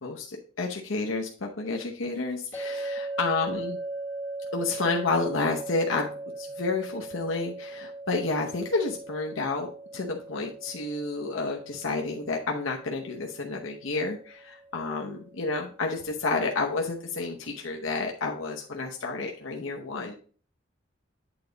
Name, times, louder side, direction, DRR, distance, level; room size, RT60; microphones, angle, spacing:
voice 1, 0.0-3.8 4.5-6.1 6.4-20.1, left 3 dB, 80° left, 1 dB, 0.9 m, -30 dB
sound 1, 2.5-15.7, right 2 dB, 10° left, 0.7 m, -39 dB
9.0 x 4.0 x 4.8 m, 0.42 s
head